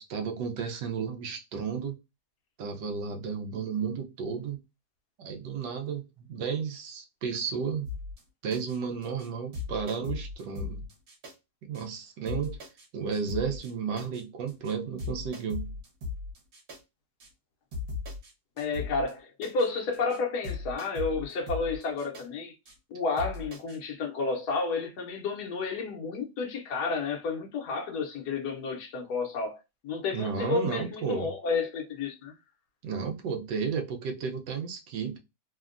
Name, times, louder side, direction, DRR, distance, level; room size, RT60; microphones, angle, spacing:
voice 1, 0.0-2.0 2.6-4.6 5.2-7.9 8.4-10.9 11.6-12.6 12.9-15.7 30.1-31.3 32.8-35.2, right 6 dB, 85° right, 1.3 m, -33 dB
sound 1, 7.9-8.2 8.5-8.8 9.0-9.3 9.5-11.3 11.7-11.8 12.3-12.9 13.1-13.7 14.0-14.2 14.5-14.7 15.0-16.8 17.2-17.3 17.7-18.3 18.6-19.1 19.4-19.7 19.9-20.2 20.4-22.2 22.7-22.8 23.2-23.8, left 4 dB, 65° right, 1.6 m, -38 dB
voice 2, 18.6-22.5 22.9-32.3, left 4 dB, 70° left, 1.2 m, -31 dB
3.5 x 2.1 x 2.4 m
omnidirectional pair, 1.8 m